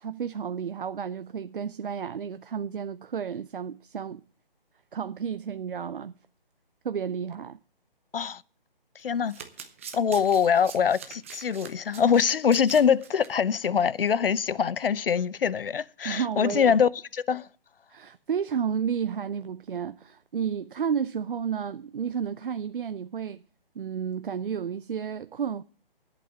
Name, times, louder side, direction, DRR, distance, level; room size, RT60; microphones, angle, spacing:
voice 1, 0.0-4.2 4.9-6.1 6.8-7.6 16.0-16.7 17.9-23.4 23.8-25.6, right 7 dB, 60° right, 0.6 m, -31 dB
voice 2, 9.0-9.4 9.9-17.5, left 7 dB, 70° left, 0.7 m, -24 dB
Domestic sounds home sounds, 9.0-13.3 13.6-13.8 14.1-14.2, right 7 dB, 15° right, 0.6 m, -44 dB
11.0 x 8.3 x 7.5 m
hypercardioid pair, 160°, 29 cm